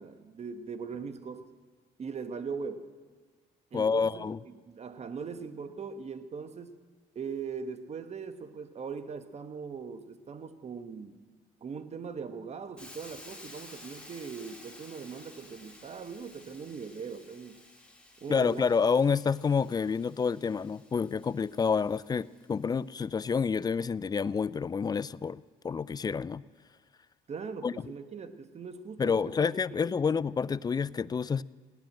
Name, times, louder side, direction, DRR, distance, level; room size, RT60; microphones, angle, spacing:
voice 1, 0.0-1.5 2.0-2.9 3.7-6.7 7.1-11.2 11.6-17.6 18.2-18.7 27.3-29.5 29.8-30.0, right 5 dB, 40° right, 1.2 m, -40 dB
voice 2, 3.7-4.4 18.3-26.4 27.6-27.7 29.0-31.4, left 5 dB, 25° left, 0.4 m, -28 dB
Hiss, 12.8-22.7, left 1 dB, 5° left, 3.1 m, -53 dB
16.5 x 10.0 x 7.7 m
supercardioid pair, 80°, 17 cm